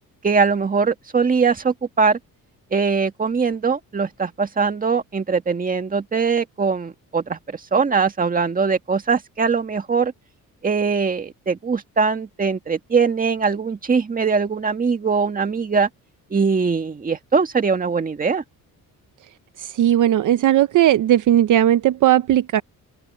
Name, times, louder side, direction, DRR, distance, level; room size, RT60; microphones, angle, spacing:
voice 1, 0.2-2.2 2.7-10.1 10.6-15.9 16.3-18.4, right 5 dB, 25° right, 1.9 m, -21 dB
voice 2, 19.8-22.6, right 12 dB, 60° right, 0.7 m, -17 dB
open air
cardioid pair, 150°, 34 cm